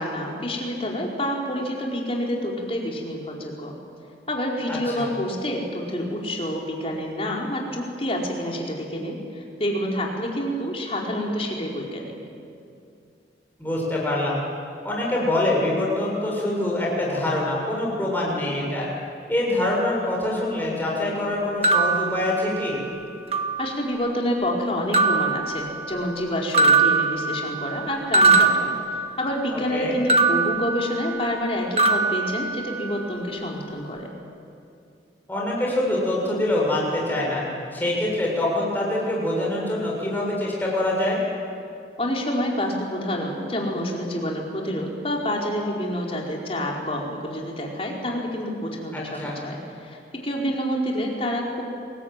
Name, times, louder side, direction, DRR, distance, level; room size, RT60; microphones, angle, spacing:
voice 1, 0.0-3.7 4.3-12.2 23.6-34.1 42.0-51.6, equal, 30° left, -1 dB, 4.7 m, -28 dB
voice 2, 4.7-5.1 13.6-14.4 14.8-18.9 19.3-22.8 29.5-30.0 35.3-37.4 37.7-41.2 48.9-49.4, left 1 dB, 10° left, -4 dB, 7.1 m, -25 dB
sound 1, 21.6-22.9 23.3-24.1 24.9-26.2 26.5-29.5 30.1-31.5 31.8-33.1, right 3 dB, 35° right, 1.7 m, -22 dB
29.5 x 22.0 x 9.2 m, 2.5 s
head